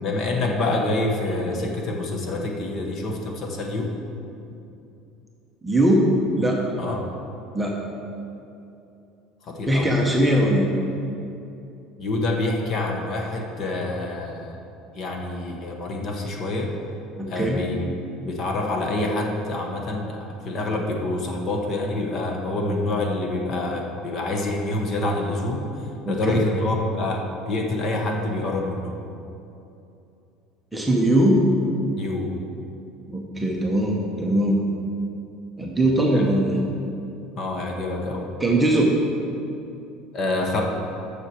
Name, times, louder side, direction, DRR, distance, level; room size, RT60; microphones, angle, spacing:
voice 1, 0.0-3.9 6.8-7.0 9.4-9.9 12.0-14.6 15.0-16.7 17.3-25.7 26.1-28.9 32.0-32.3 36.1-36.3 37.4-38.3 40.1-40.6, left 2 dB, 30° left, 1 dB, 0.9 m, -27 dB
voice 2, 5.6-6.1 6.4-6.6 7.5-7.7 9.7-10.7 17.2-17.6 26.0-26.4 30.7-31.4 33.1-34.6 35.6-36.6 38.4-38.9, right 1 dB, 5° right, -2 dB, 0.8 m, -20 dB
7.3 x 6.7 x 6.2 m, 2.7 s
cardioid pair, 175°, 0 cm